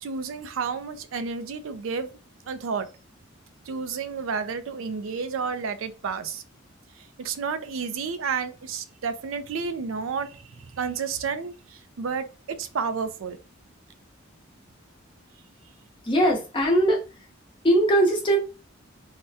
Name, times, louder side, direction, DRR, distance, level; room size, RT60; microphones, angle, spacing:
voice 1, 0.0-2.1 2.5-2.9 3.7-6.4 7.2-13.4, right 5 dB, 85° right, 0.4 m, -31 dB
voice 2, 16.0-17.0 17.6-18.4, right 1 dB, 25° left, 0.8 m, -20 dB
3.4 x 2.1 x 2.7 m
head